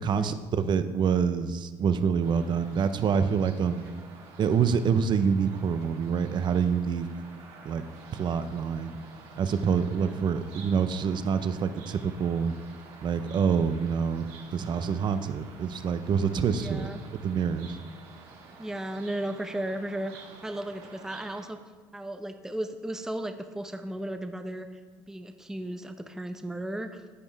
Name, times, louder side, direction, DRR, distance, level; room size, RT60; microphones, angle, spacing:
voice 1, 0.0-3.9 4.4-7.1 7.6-7.8 8.1-9.0 9.4-12.5 13.0-16.9 17.2-17.8, right 6 dB, 45° right, 11 dB, 0.7 m, -26 dB
sound 1, 2.2-21.5, right 4 dB, 60° right, 1.8 m, -50 dB
voice 2, 16.5-17.0 18.6-21.6 21.9-24.8 25.1-27.0, right 1 dB, 5° right, 7 dB, 0.6 m, -35 dB
14.5 x 5.3 x 3.4 m, 1.4 s
supercardioid pair, 80°, 11 cm